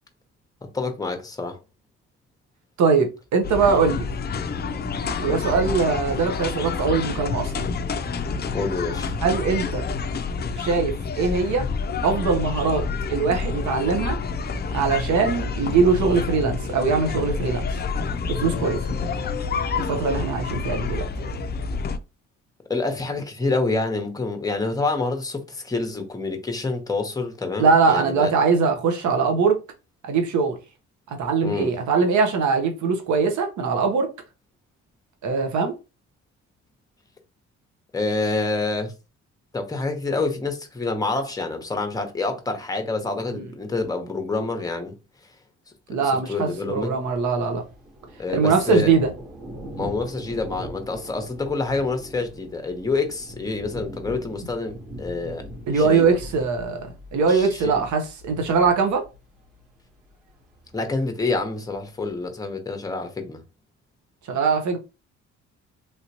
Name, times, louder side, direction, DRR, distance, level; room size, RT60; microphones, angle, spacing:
voice 1, 0.6-1.6 5.3-5.4 8.5-9.1 22.7-28.3 31.4-31.7 37.9-38.9 39.5-45.0 46.3-47.0 48.2-48.9 49.8-55.4 55.7-56.2 57.3-57.8 60.7-63.4, left 3 dB, 10° left, 0.8 m, -27 dB
voice 2, 2.8-4.1 5.2-7.7 9.2-9.9 10.6-11.7 12.0-12.9 13.1-14.2 14.7-17.7 18.3-18.8 19.7-21.0 27.6-29.6 30.0-30.6 31.1-34.1 35.2-35.7 43.3-43.5 45.9-47.6 48.3-49.1 55.7-59.1 64.3-64.8, right 5 dB, 70° right, 0.9 m, -22 dB
sound 1, 3.4-22.0, left 5 dB, 35° left, 0.4 m, -28 dB
Thunder, 46.7-62.3, equal, 85° right, 1.6 m, -41 dB
3.3 x 2.8 x 2.9 m
cardioid pair, 90°, 30 cm